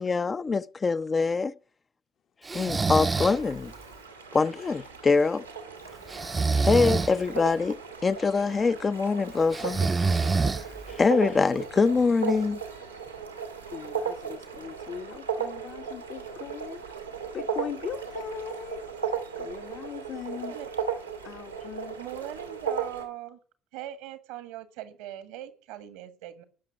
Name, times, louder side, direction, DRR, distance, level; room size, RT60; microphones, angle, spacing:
voice 1, 0.0-1.5 2.5-3.7 4.3-5.5 6.5-9.8 10.9-12.6, left 4 dB, 30° left, 0.5 m, -24 dB
Breathing, 2.5-3.4 6.1-7.1 9.5-10.9, right 4 dB, 25° right, 0.6 m, -26 dB
sound 1, 3.2-23.0, right 7 dB, 90° right, 1.7 m, -36 dB
voice 2, 13.7-16.8 17.3-18.8 19.4-20.5 21.2-22.0, left 8 dB, 55° left, 1.1 m, -39 dB
voice 3, 20.3-20.7 22.0-23.4 23.7-26.4, right 11 dB, 70° right, 1.5 m, -40 dB
18.5 x 6.7 x 5.8 m
figure-of-eight pair, 50°, 0 cm